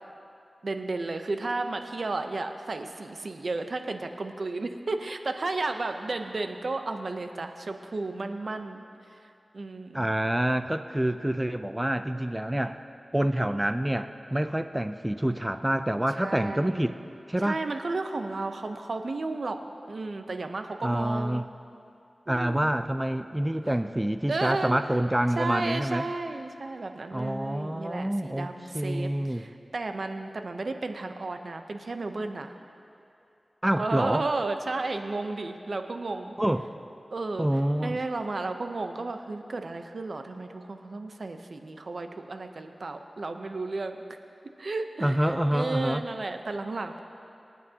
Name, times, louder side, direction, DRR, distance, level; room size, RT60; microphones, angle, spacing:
voice 1, 0.6-8.8 9.2-10.1 16.2-16.9 17.4-19.6 19.9-21.5 22.3-22.7 24.3-24.8 25.4-32.5 33.8-36.4 37.1-37.5 37.8-44.0 44.6-47.0, right 3 dB, 70° right, 6 dB, 0.7 m, -33 dB
voice 2, 9.9-12.8 13.1-17.0 17.3-17.6 20.8-21.5 22.3-26.0 27.1-28.5 28.7-29.4 33.6-34.3 36.4-36.7 37.4-38.0 45.0-46.0, right 1 dB, 15° right, 9 dB, 0.4 m, -27 dB
25.0 x 9.2 x 2.8 m, 2.6 s
wide cardioid pair, 55°, 0 cm